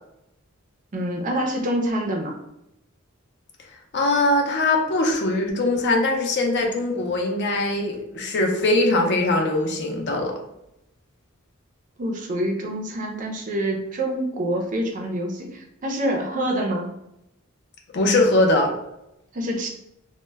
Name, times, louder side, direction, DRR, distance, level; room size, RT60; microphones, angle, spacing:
voice 1, 0.9-2.3 12.0-16.9 19.3-19.7, right 1 dB, 35° right, 2 dB, 0.4 m, -26 dB
voice 2, 3.9-10.3 17.9-18.7, left 2 dB, 50° left, 2 dB, 0.5 m, -21 dB
2.1 x 2.1 x 3.2 m, 0.84 s
head